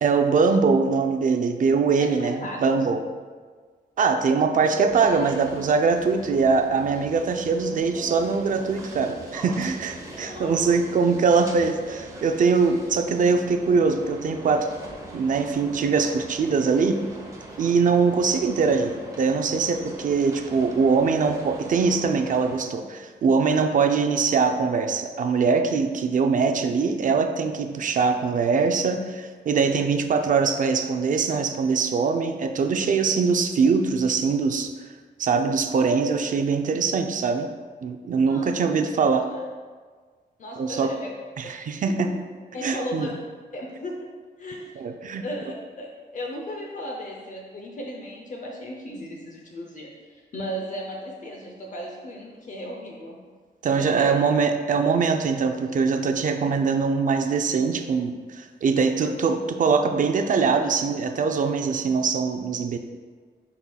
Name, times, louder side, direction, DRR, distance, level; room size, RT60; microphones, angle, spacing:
voice 1, 0.0-3.0 4.0-14.7 15.1-17.0 17.6-34.7 35.2-37.5 37.8-39.3 40.6-40.9 41.4-42.1 42.6-43.1 44.8-45.2 53.6-62.8, right 5 dB, 45° right, 6 dB, 0.5 m, -22 dB
voice 2, 2.0-2.6 10.2-10.7 38.3-38.5 39.2-39.4 40.4-41.1 42.0-42.1 42.5-43.1 43.5-44.0 44.4-44.7 45.2-53.2 53.8-54.1, equal, 45° left, -1 dB, 0.7 m, -35 dB
sound 1, 4.9-22.6, right 1 dB, 20° right, 1.0 m, -41 dB
10.5 x 4.3 x 2.3 m, 1.5 s
wide cardioid pair, 145°, 18 cm